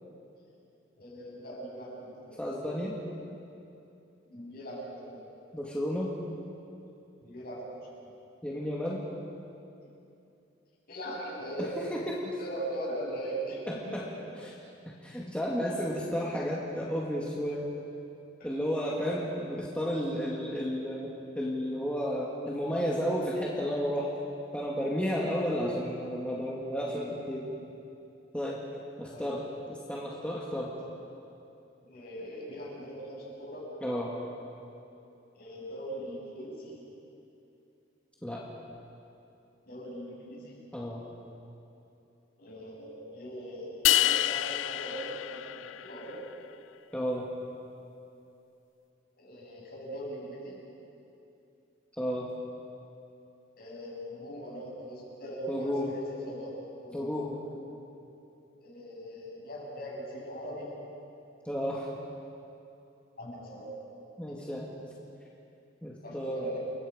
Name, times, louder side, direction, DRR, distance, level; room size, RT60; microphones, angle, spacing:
voice 1, 1.0-2.4 4.3-5.2 7.2-7.8 10.9-11.7 12.2-14.2 18.9-19.1 22.1-22.2 26.9-27.1 29.1-29.3 31.8-33.7 35.3-36.8 39.7-40.6 42.4-46.2 49.2-50.6 53.6-56.6 56.8-57.1 58.6-60.7 63.2-63.7 64.3-64.5 66.0-66.6, right 1 dB, 50° left, -4 dB, 7.2 m, -40 dB
voice 2, 2.4-3.0 5.5-6.1 8.4-9.0 11.6-12.2 13.7-14.0 14.4-14.5 15.0-17.7 18.4-24.1 24.5-27.5 28.3-28.6 29.0-29.4 29.7-30.7 33.8-34.1 38.2-38.4 40.7-41.0 46.9-47.3 52.0-52.3 55.5-55.9 56.9-57.6 61.5-61.9 64.2-64.8 65.8-66.4, equal, 5° left, -4 dB, 2.1 m, -32 dB
sound 1, 43.8-46.1, left 13 dB, 85° left, 0.4 m, -28 dB
29.5 x 23.0 x 5.1 m, 2.8 s
head